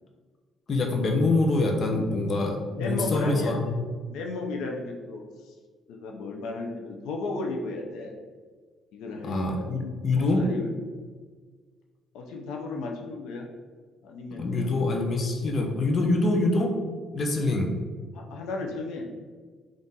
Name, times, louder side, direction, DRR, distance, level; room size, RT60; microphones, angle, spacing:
voice 1, 0.7-3.8 9.2-10.4 14.4-16.7 17.1-17.7, left 2 dB, 40° left, 2 dB, 0.6 m, -25 dB
voice 2, 2.7-3.5 4.1-5.5 5.9-8.1 8.9-9.7 10.2-10.7 12.1-13.5 14.0-14.7 18.1-19.2, left 3 dB, 90° left, 1 dB, 0.5 m, -34 dB
3.7 x 2.5 x 4.0 m, 1.5 s
cardioid pair, 120°, 0 cm